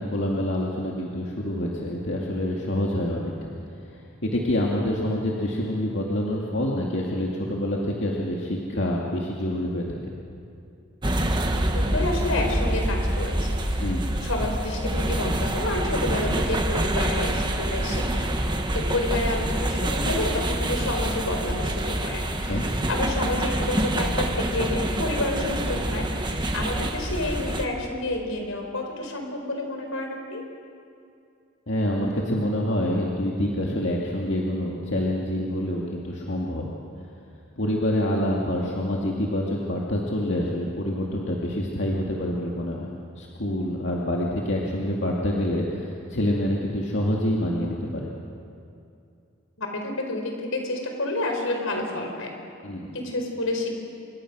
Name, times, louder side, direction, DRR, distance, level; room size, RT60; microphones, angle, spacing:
voice 1, 0.0-3.5 3.9-10.0 13.8-14.2 22.4-22.7 31.7-36.6 37.6-42.9 43.2-48.1 52.6-52.9, left 1 dB, 60° left, -3 dB, 2.4 m, -27 dB
sound 1, 11.0-27.7, right 1 dB, 20° right, 1.4 m, -26 dB
voice 2, 11.7-13.9 14.2-18.3 18.7-30.4 49.6-52.3 52.9-53.7, left 2 dB, 80° left, 3 dB, 4.7 m, -29 dB
27.0 x 24.0 x 6.3 m, 2.5 s
head